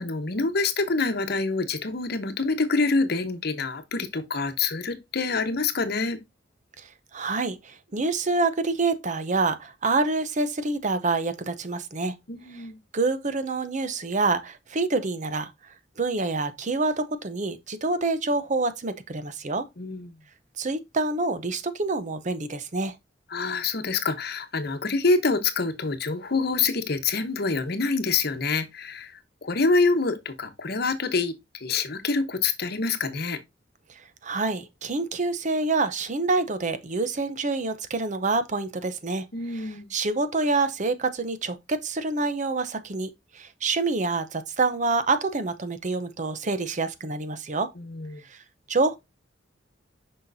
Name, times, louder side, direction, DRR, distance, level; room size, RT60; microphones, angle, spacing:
voice 1, 0.0-6.2 12.3-12.8 19.8-20.1 23.3-33.4 39.3-39.9 47.8-48.2, left 3 dB, 55° left, 1.0 m, -26 dB
voice 2, 7.1-12.1 12.5-12.6 12.9-15.5 16.0-19.7 20.6-22.9 34.2-39.2 39.5-43.1 43.3-47.7 48.3-48.4 48.7-49.0, right 3 dB, 40° right, 0.7 m, -27 dB
6.3 x 5.7 x 2.6 m
head